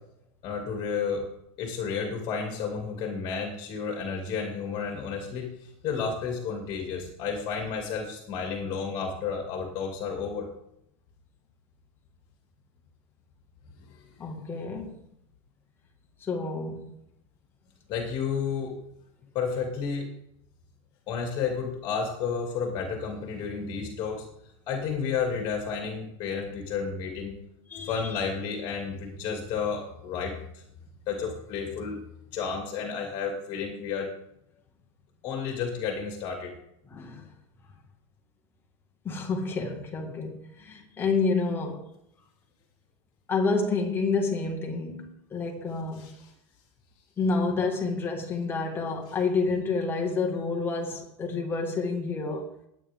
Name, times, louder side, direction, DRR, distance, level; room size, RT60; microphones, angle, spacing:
voice 1, 0.4-1.2 1.6-10.5 14.0-14.1 17.9-18.8 19.3-20.1 21.1-24.2 24.7-27.3 27.8-30.6 31.1-32.0 32.3-34.1 35.2-36.5 46.0-46.1, left 6 dB, 30° left, 2.6 m, -31 dB
voice 2, 14.2-15.0 16.2-17.0 27.7-28.2 36.9-37.3 39.0-41.9 43.3-46.1 47.2-52.5, left 4 dB, 15° left, 1.9 m, -29 dB
20.0 x 9.1 x 3.7 m
supercardioid pair, 170°, 16 cm